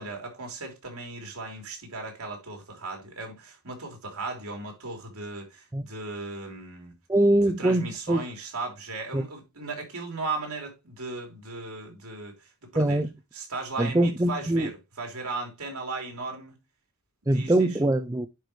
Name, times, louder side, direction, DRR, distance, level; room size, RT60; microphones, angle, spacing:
voice 1, 0.0-6.9 7.6-13.0 13.3-16.6 17.2-17.7, right 3 dB, 70° right, 3.3 m, -37 dB
voice 2, 7.1-8.2 9.1-9.2 12.8-13.1 13.8-14.7 17.3-18.3, right 1 dB, 15° right, 0.5 m, -23 dB
10.0 x 5.0 x 3.1 m
head